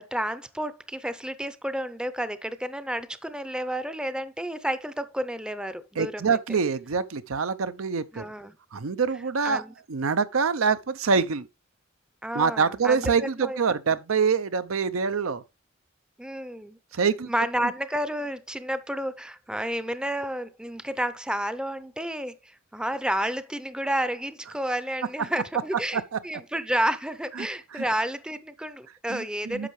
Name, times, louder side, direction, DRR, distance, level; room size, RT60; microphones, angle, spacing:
voice 1, 0.0-6.4 8.1-8.5 9.4-9.7 12.2-13.6 16.2-16.8 17.3-29.7, right 1 dB, 5° right, 0.6 m, -31 dB
voice 2, 6.0-8.2 8.7-11.5 12.3-15.4 16.9-17.3 25.9-26.2 27.4-27.5 27.7-27.8 29.1-29.7, right 5 dB, 80° right, 0.6 m, -25 dB
9.9 x 6.5 x 3.2 m
head